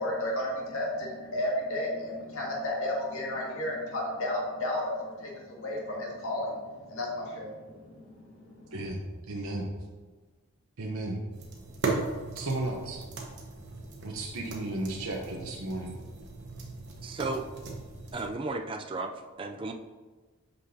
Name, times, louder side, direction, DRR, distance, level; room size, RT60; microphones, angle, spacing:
voice 1, 0.0-8.7, left 1 dB, 65° left, -2 dB, 1.9 m, -33 dB
voice 2, 8.7-9.7 10.8-11.2 12.3-13.0 14.0-16.0, right 2 dB, 75° right, -2 dB, 0.9 m, -34 dB
sound 1, 11.3-18.3, right 3 dB, 50° right, 1.1 m, -37 dB
voice 3, 17.0-17.4 18.1-19.1 19.4-19.7, right 3 dB, 25° right, 4 dB, 0.3 m, -34 dB
8.2 x 5.6 x 2.8 m, 1.3 s
head